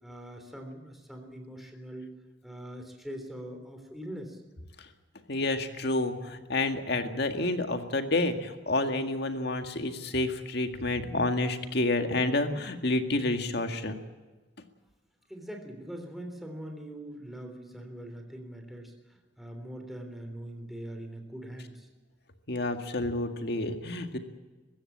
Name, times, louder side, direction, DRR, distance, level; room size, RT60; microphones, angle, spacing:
voice 1, 0.0-2.1 2.4-4.4 15.3-18.9 19.4-21.9, right 1 dB, ahead, 4 dB, 3.5 m, -42 dB
voice 2, 5.3-14.0 22.5-24.2, left 2 dB, 60° left, 7 dB, 1.9 m, -29 dB
21.0 x 16.0 x 8.7 m, 1.3 s
head